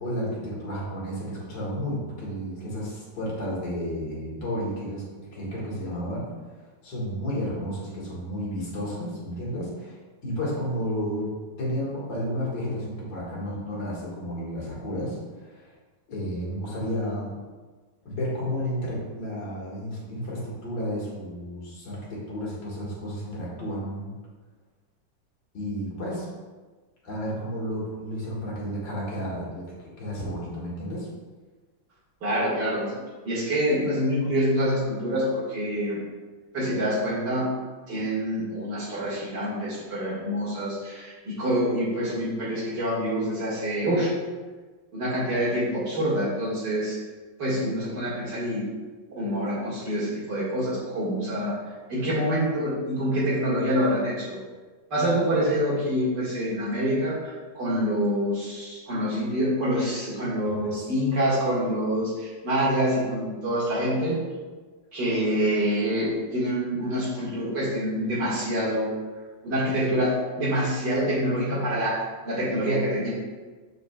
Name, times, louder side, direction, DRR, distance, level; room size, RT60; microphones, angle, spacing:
voice 1, 0.0-5.0 5.3-6.3 6.6-10.0 10.2-11.3 11.6-15.7 16.1-17.3 18.1-24.1 25.5-26.3 27.0-31.1 60.5-60.9, equal, 70° left, -6 dB, 2.3 m, -32 dB
voice 2, 32.2-32.9 33.2-36.0 36.5-37.5 37.9-44.1 44.9-47.0 47.4-48.6 49.2-51.5 51.9-54.4 54.9-64.2 64.9-68.9 69.4-72.0 72.2-73.1, equal, 60° right, -7 dB, 2.4 m, -26 dB
6.6 x 6.4 x 2.3 m, 1.4 s
omnidirectional pair, 2.1 m